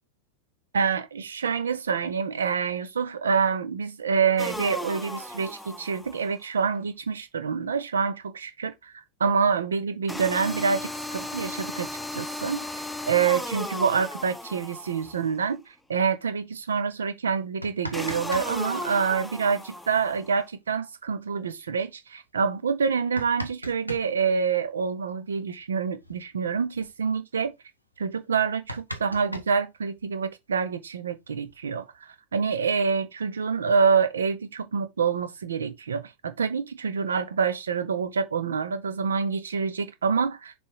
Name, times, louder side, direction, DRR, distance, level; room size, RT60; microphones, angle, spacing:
voice 1, 0.7-8.9 9.2-12.6 13.1-15.6 15.9-27.5 28.0-31.8 32.3-40.5, right 6 dB, 70° right, 0.9 m, -26 dB
sound 1, 4.4-6.3 10.1-15.4 17.9-20.3, left 1 dB, 5° left, 0.7 m, -36 dB
sound 2, 17.4-18.5 18.7-18.8 20.6-20.7 21.1-21.2 21.8-21.9 22.7-24.1 25.6-25.7 26.0-26.2 26.5-26.9 27.5-27.6 27.9-28.0 28.3-30.2 31.1-32.0, right 1 dB, 85° right, 1.1 m, -39 dB
6.7 x 3.6 x 4.7 m
figure-of-eight pair, 90°, 0 cm